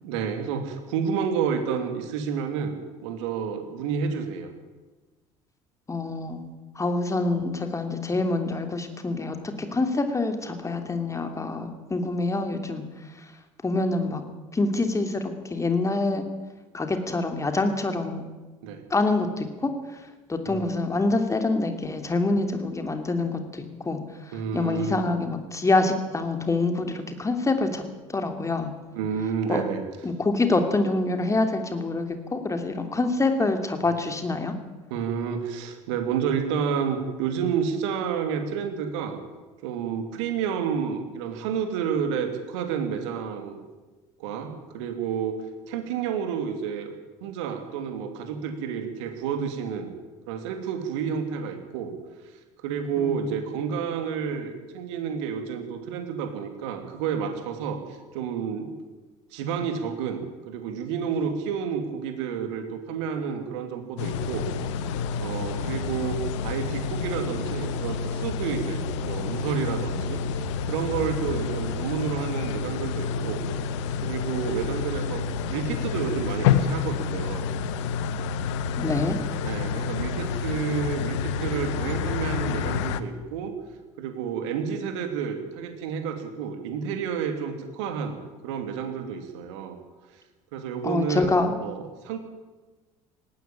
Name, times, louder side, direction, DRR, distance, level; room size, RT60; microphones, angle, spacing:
voice 1, 0.0-2.7 3.0-4.5 18.6-18.8 20.4-20.8 24.3-24.9 28.9-29.8 34.9-39.2 39.6-43.6 44.2-46.9 47.2-49.9 50.3-51.9 52.2-58.7 59.3-64.5 65.2-73.4 74.0-75.2 75.5-77.5 79.4-83.5 84.0-89.8 90.1-90.2 90.5-91.3 91.6-92.2, right 7 dB, 65° right, 6 dB, 2.9 m, -30 dB
voice 2, 5.9-6.4 6.7-12.8 13.6-14.2 14.5-15.2 15.5-16.2 16.7-18.2 18.9-19.7 20.3-24.0 24.5-27.8 28.1-28.7 29.5-29.6 30.0-34.5 53.0-53.3 78.8-79.2 90.8-91.5, left 2 dB, 20° left, 6 dB, 3.1 m, -26 dB
sound 1, 64.0-83.0, left 6 dB, 65° left, 1.1 m, -29 dB
19.0 x 15.5 x 8.9 m, 1.2 s
figure-of-eight pair, 60°, 16 cm